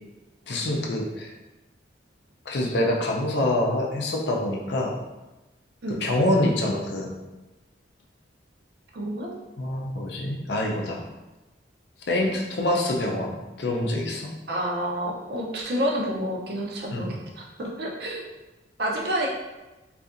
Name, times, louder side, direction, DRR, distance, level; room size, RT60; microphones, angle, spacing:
voice 1, 0.5-1.3 2.5-4.9 6.0-7.1 9.6-11.0 12.1-14.3 16.9-17.3, left 1 dB, 65° left, -1 dB, 0.5 m, -26 dB
voice 2, 8.9-9.3 14.5-18.2 18.8-19.3, equal, 60° right, -1 dB, 0.5 m, -29 dB
2.7 x 2.4 x 2.4 m, 1.1 s
head